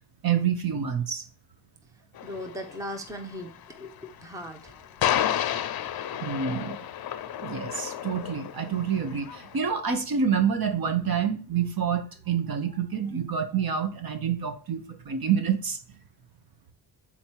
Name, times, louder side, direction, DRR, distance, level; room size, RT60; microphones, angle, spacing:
voice 1, 0.2-1.2 6.2-6.8 7.4-15.8, right 7 dB, 50° right, 7 dB, 1.2 m, -27 dB
sound 1, 2.1-9.6, left 10 dB, 55° left, 0.6 m, -32 dB
voice 2, 2.2-4.8, equal, 5° right, 5 dB, 0.7 m, -38 dB
7.3 x 4.4 x 4.6 m, 0.38 s
wide cardioid pair, 145°, 46 cm